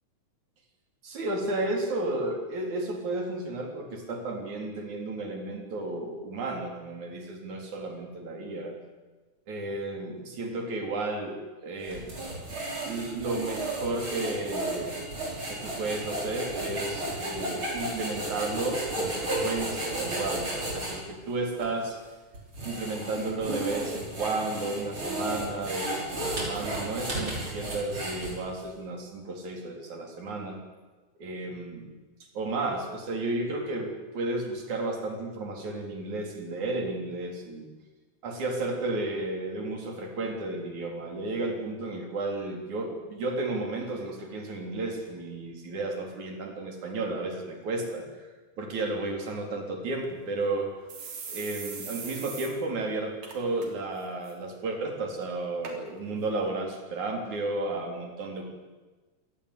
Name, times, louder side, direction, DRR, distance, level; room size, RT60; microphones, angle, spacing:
voice 1, 1.0-8.7 9.5-12.1 12.8-15.0 15.5-22.0 22.6-30.6 31.2-31.9 32.3-37.7 38.2-48.3 48.6-50.7 51.3-58.4, right 2 dB, 60° right, 2 dB, 5.1 m, -33 dB
sound 1, 11.8-21.0 21.6-21.7 22.3-28.6, right 1 dB, 35° right, 6.8 m, -33 dB
sound 2, 50.0-50.1 50.4-50.5 50.9-52.5 52.8-52.9 53.2-53.7 54.0-54.3 55.0-55.1 55.6-55.8 56.5-56.6, right 5 dB, 75° right, 5.0 m, -40 dB
25.5 x 18.5 x 8.4 m, 1.2 s
omnidirectional pair, 3.8 m